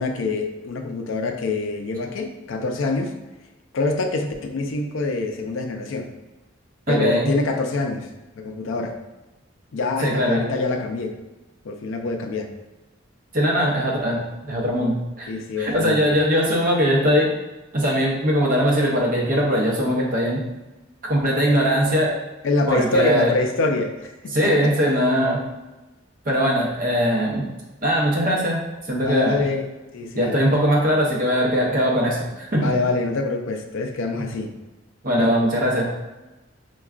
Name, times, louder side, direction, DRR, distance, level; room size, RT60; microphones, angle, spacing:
voice 1, 0.0-3.1 3.7-6.1 6.9-8.1 8.4-9.0 9.7-11.2 11.6-12.5 15.3-16.1 22.4-24.6 29.0-30.4 32.5-34.5 35.2-35.4, left 3 dB, 75° left, 4 dB, 0.4 m, -25 dB
voice 2, 6.9-7.3 10.0-10.4 13.3-15.3 15.6-17.3 17.7-20.4 21.0-22.1 22.7-23.3 24.3-25.4 26.2-27.5 27.8-29.4 30.1-32.7 35.0-35.9, equal, 40° right, -3 dB, 0.7 m, -21 dB
4.6 x 2.2 x 2.4 m, 1.1 s
head